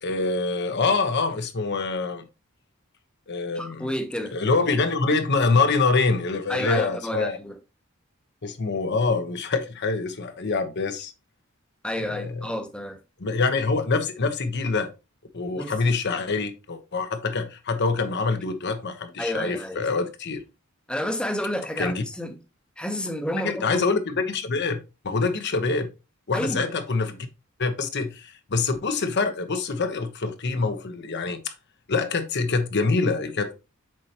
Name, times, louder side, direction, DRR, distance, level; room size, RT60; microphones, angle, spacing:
voice 1, 0.0-2.2 3.3-3.9 4.3-7.4 8.4-11.1 12.1-12.5 13.2-14.9 15.3-20.4 21.8-22.0 23.4-24.8 25.0-25.9 26.3-27.3 27.6-31.5 31.9-33.5, left 4 dB, 55° left, 0.9 m, -25 dB
voice 2, 3.5-4.3 6.5-7.6 11.8-13.0 15.6-15.7 19.2-19.9 20.9-22.4 22.8-23.8 26.3-26.7, equal, 5° left, 0.8 m, -30 dB
7.4 x 4.5 x 2.9 m
head